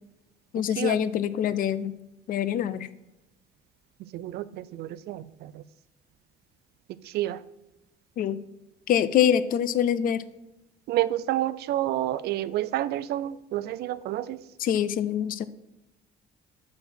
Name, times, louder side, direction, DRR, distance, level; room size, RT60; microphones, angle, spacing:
voice 1, 0.5-1.9 2.3-2.9 8.2-8.4 8.9-10.2 14.6-15.5, left 9 dB, 55° left, 15 dB, 0.5 m, -25 dB
voice 2, 4.0-5.6 7.0-7.4 10.9-14.4, right 14 dB, 70° right, 17 dB, 0.4 m, -29 dB
6.7 x 4.1 x 6.1 m, 0.95 s
cardioid pair, 110°, 17 cm